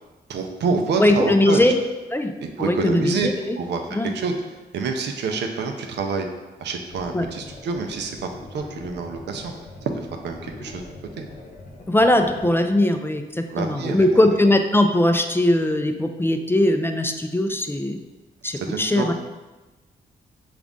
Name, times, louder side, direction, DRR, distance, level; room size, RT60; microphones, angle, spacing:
voice 1, 0.3-1.7 2.4-3.3 3.6-4.3 4.7-6.3 6.6-8.2 8.5-10.8 11.2-11.3 12.4-12.5 13.5-14.4 18.6-19.1, right 4 dB, 85° right, 4 dB, 0.5 m, -27 dB
voice 2, 1.0-1.8 2.1-2.3 2.6-3.6 3.9-4.1 7.1-7.3 11.9-18.0 18.4-19.1, left 1 dB, 15° left, 6 dB, 0.3 m, -20 dB
sound 1, 6.9-12.5, left 2 dB, 45° left, 0.8 m, -42 dB
5.1 x 2.5 x 3.5 m, 1.1 s
cardioid pair, 70°, 18 cm